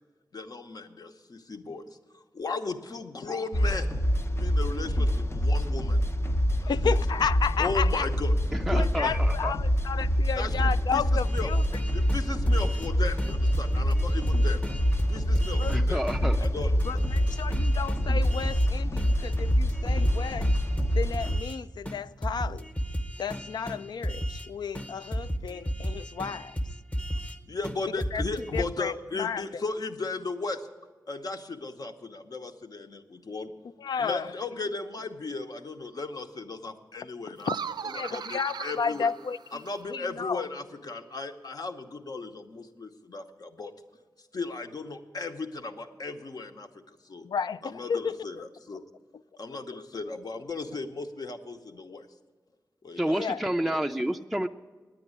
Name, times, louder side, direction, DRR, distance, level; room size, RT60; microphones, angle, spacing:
voice 1, 0.3-1.8 2.1-3.9 4.3-6.0 6.6-6.7 7.6-9.2 10.4-11.5 11.9-14.6 15.1-17.0 27.5-30.7 31.1-33.5 34.0-37.5 37.9-39.1 39.5-43.7 44.3-47.3 47.6-48.8 49.4-52.1 52.8-53.8, left 3 dB, 65° left, 0.9 m, -36 dB
sound 1, 3.5-21.4, equal, 40° left, 0.6 m, -26 dB
voice 2, 6.5-8.1 8.7-11.6 15.6-15.8 16.8-20.5 20.9-22.7 23.2-26.6 28.1-28.2 28.5-29.4 33.8-34.3 37.3-37.6 37.9-39.6 39.9-40.5 47.2-48.3 53.1-53.4, left 6 dB, 85° left, 0.3 m, -32 dB
voice 3, 8.5-9.5 15.7-16.4 53.0-54.5, right 1 dB, ahead, 0.4 m, -29 dB
sound 2, 11.2-12.9 13.2-15.8 16.1-16.2 16.4-18.7 19.0-21.6 21.9-22.0 22.2-24.5 24.8-27.4 27.6-27.8 28.0-28.7, equal, 20° left, 0.9 m, -33 dB
sound 3, 37.4-39.9, right 7 dB, 80° right, 0.3 m, -38 dB
9.9 x 9.0 x 9.6 m
wide cardioid pair, 110°, 7 cm